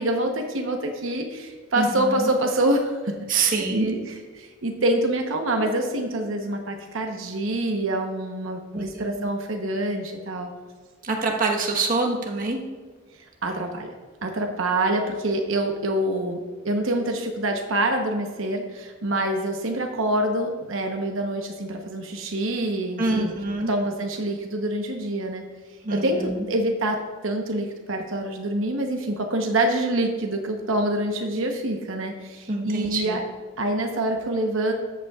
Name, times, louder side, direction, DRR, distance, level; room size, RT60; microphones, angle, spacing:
voice 1, 0.0-10.5 13.4-13.9 14.2-16.4 16.6-23.3 23.7-25.4 25.9-33.2 33.6-34.7, right 1 dB, 85° right, 3 dB, 0.9 m, -26 dB
voice 2, 1.8-2.3 3.3-3.9 8.7-9.3 11.0-12.6 23.0-23.7 25.8-26.5 32.5-33.2, right 3 dB, 45° right, 0 dB, 1.2 m, -26 dB
13.5 x 8.1 x 2.4 m, 1.4 s
head